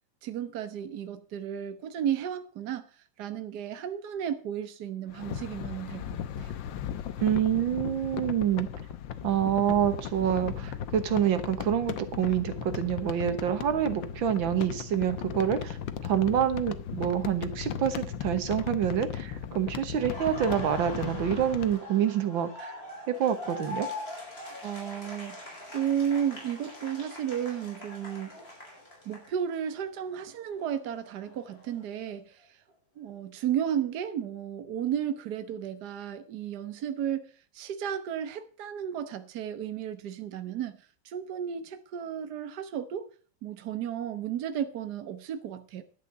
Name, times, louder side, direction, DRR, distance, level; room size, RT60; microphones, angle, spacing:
voice 1, 0.2-2.8 3.2-6.5 24.6-28.4 29.0-32.6 33.0-37.2 37.5-40.8 41.0-43.1 43.4-45.8, right 9 dB, 60° right, 1.5 m, -33 dB
sound 1, 5.1-21.8, left 9 dB, 75° left, 1.6 m, -37 dB
voice 2, 7.2-8.7 9.2-15.8 16.0-22.7 23.1-23.9, right 9 dB, 85° right, 2.0 m, -27 dB
Laughter, 19.9-29.8 30.1-32.1, left 1 dB, 30° left, 5.1 m, -43 dB
11.5 x 8.3 x 6.6 m
omnidirectional pair, 2.1 m